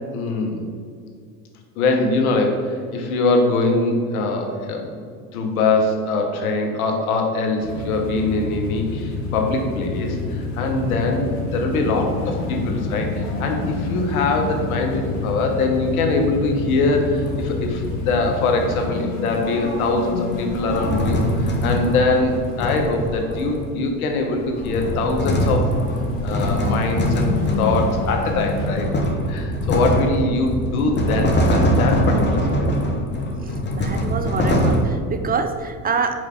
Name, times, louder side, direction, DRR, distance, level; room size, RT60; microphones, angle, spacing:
voice 1, 0.1-0.6 1.8-5.0 5.3-25.7 26.2-27.3 27.6-28.9 29.3-32.7, left 3 dB, 90° left, 3 dB, 1.2 m, -22 dB
sound 1, 7.6-18.9, left 3 dB, 40° left, 1.6 m, -29 dB
sound 2, 10.0-28.8, left 3 dB, 65° left, 1.6 m, -32 dB
sound 3, 17.1-18.3 19.3-23.8 24.4-34.8, equal, 25° left, 1.1 m, -23 dB
voice 2, 33.7-36.1, right 5 dB, 25° right, 7 dB, 0.3 m, -25 dB
4.8 x 4.7 x 5.7 m, 2.1 s
supercardioid pair, 90°, 41 cm